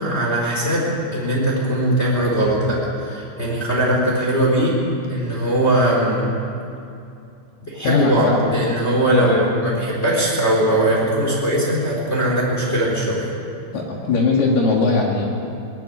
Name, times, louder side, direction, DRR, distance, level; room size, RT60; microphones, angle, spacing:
voice 1, 0.0-4.8 5.1-6.2 7.7-13.3, right 1 dB, 15° left, -4 dB, 3.6 m, -20 dB
voice 2, 7.8-8.5 9.1-9.5 13.7-15.2, left 3 dB, 60° left, -1 dB, 3.4 m, -20 dB
20.5 x 13.0 x 10.0 m, 2.6 s
omnidirectional pair, 5.8 m